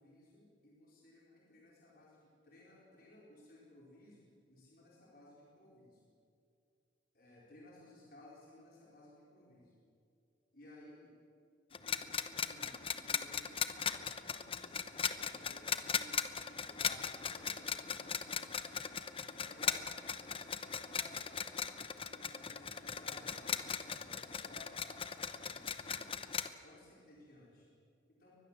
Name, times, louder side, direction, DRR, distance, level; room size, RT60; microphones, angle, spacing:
voice 1, 0.0-6.0 7.1-9.7 10.5-11.1 11.7-12.8 13.1-18.6 19.3-21.8 22.1-26.0 26.6-27.7 28.1-28.4, left 1 dB, 50° left, -5 dB, 4.7 m, -59 dB
sound 1, 11.7-26.5, left 7 dB, 30° left, 0.8 m, -38 dB
23.5 x 20.0 x 7.6 m, 2.4 s
head